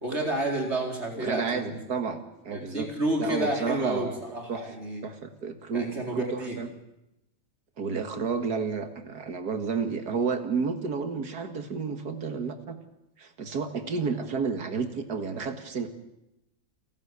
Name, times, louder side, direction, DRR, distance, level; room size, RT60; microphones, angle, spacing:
voice 1, 0.0-1.7 2.5-5.0 5.7-6.6, right 1 dB, 35° right, 1 dB, 4.6 m, -30 dB
voice 2, 1.2-2.9 3.2-4.2 4.5-4.6 5.0-6.7 7.8-12.8 13.2-15.9, right 5 dB, 60° right, 8 dB, 2.3 m, -31 dB
29.0 x 12.0 x 8.4 m, 0.90 s
omnidirectional pair, 2.0 m